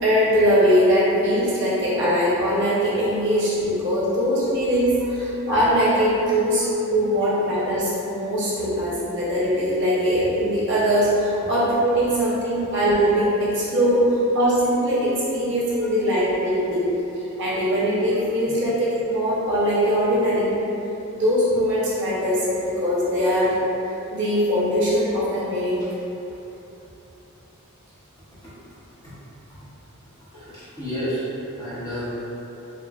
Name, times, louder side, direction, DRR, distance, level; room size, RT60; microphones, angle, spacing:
voice 1, 0.0-16.9 17.4-20.6 21.1-23.6 24.1-25.8, equal, 55° right, -8 dB, 0.6 m, -21 dB
voice 2, 30.3-31.3 31.6-32.2, equal, 15° left, -12 dB, 0.7 m, -31 dB
2.9 x 2.3 x 2.3 m, 3.0 s
head